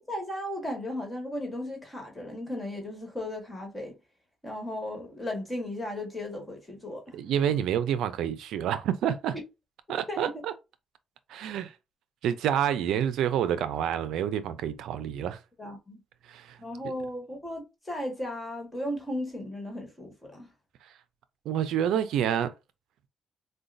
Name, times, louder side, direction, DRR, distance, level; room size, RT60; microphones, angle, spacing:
voice 1, 0.1-4.0 4.4-7.2 10.1-10.3 15.6-16.0 16.6-20.5, left 1 dB, 15° left, 1.6 m, -36 dB
voice 2, 7.1-9.4 9.9-10.5 11.3-11.7 12.2-15.4 16.3-16.6 20.8-20.9 21.5-22.5, right 9 dB, 85° right, 0.4 m, -28 dB
4.8 x 2.2 x 2.5 m
cardioid pair, 90°, 0 cm